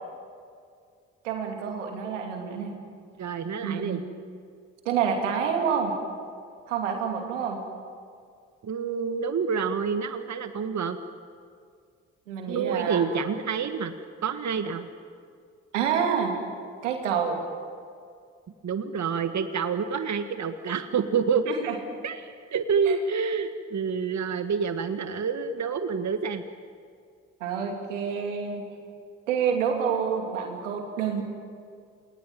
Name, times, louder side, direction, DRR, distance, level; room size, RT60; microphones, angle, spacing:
voice 1, 1.2-2.7 3.6-4.0 4.8-5.9 6.7-7.6 12.3-13.0 15.7-16.3 16.8-17.4 21.5-21.7 22.9-23.0 27.4-28.6 29.3-31.2, right 7 dB, 90° right, 3 dB, 2.7 m, -28 dB
voice 2, 3.2-4.0 8.6-11.0 12.5-13.9 14.2-14.9 18.6-21.4 22.0-26.4, right 6 dB, 50° right, 8 dB, 1.7 m, -28 dB
28.5 x 21.5 x 9.3 m, 2.2 s
hypercardioid pair, 40°, 36 cm